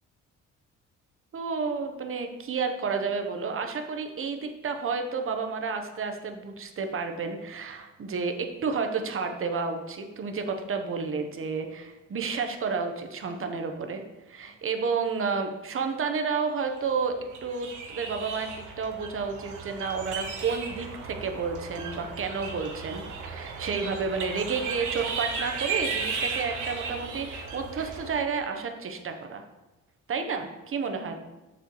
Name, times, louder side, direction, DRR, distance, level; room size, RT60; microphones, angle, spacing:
voice 1, 1.3-14.0 14.3-17.2 17.4-29.4 30.1-31.1, right 5 dB, 45° right, 5 dB, 1.0 m, -31 dB
sound 1, 17.1-28.2, right 5 dB, 80° right, 1.2 m, -35 dB
7.3 x 6.9 x 3.1 m, 1.1 s
cardioid pair, 90°, 30 cm